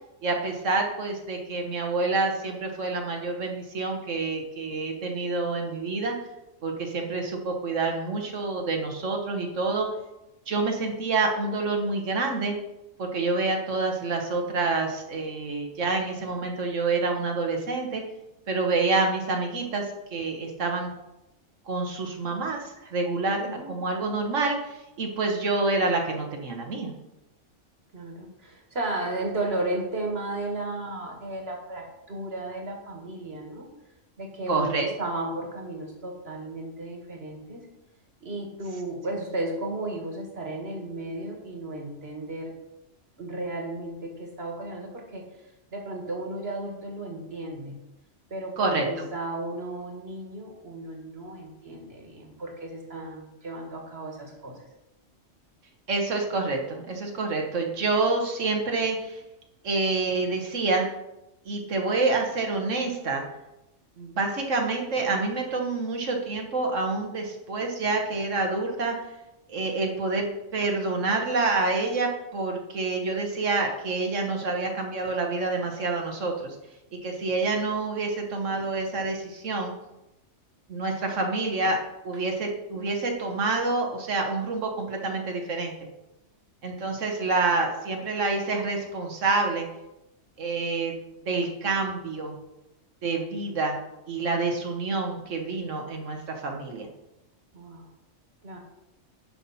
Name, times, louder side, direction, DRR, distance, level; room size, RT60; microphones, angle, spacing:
voice 1, 0.2-6.1 6.6-9.9 10.5-12.6 13.0-18.0 18.5-19.8 20.1-20.9 21.7-26.9 34.5-34.9 48.6-49.1 55.9-59.2 59.6-60.9 61.4-63.2 64.0-69.0 69.5-76.6 77.0-79.7 80.7-81.8 82.0-85.7 86.6-89.7 90.4-90.9 91.3-92.3 93.0-93.8 94.1-96.9, right 3 dB, 85° right, 2 dB, 1.7 m, -27 dB
voice 2, 27.9-33.7 34.2-37.6 38.2-42.5 43.2-45.3 45.7-47.8 48.3-54.6 97.5-97.9 98.4-98.6, right 2 dB, 55° right, 1 dB, 2.0 m, -34 dB
10.0 x 5.9 x 4.2 m, 0.93 s
omnidirectional pair, 1.3 m